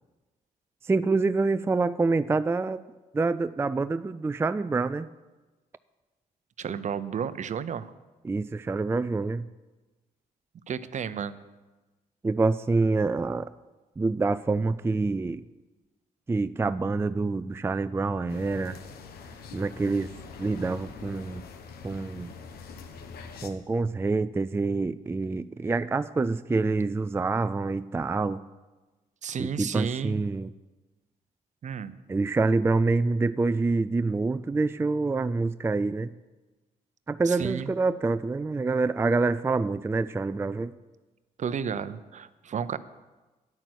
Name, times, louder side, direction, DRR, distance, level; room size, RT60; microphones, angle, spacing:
voice 1, 0.8-2.8 3.1-5.1 8.2-9.5 12.2-13.5 14.0-15.5 16.3-18.8 19.5-20.1 20.4-21.4 21.8-22.3 23.4-28.4 29.4-30.5 32.1-36.1 37.1-40.7, right 3 dB, 15° right, 13 dB, 0.3 m, -26 dB
voice 2, 6.6-7.9 10.7-11.4 29.2-30.2 31.6-32.0 37.3-37.7 41.4-42.8, right 7 dB, 50° right, 14 dB, 0.7 m, -32 dB
sound 1, 18.3-23.5, left 5 dB, 85° left, 1.1 m, -44 dB
11.0 x 8.8 x 6.3 m, 1.2 s
cardioid pair, 75°, 16 cm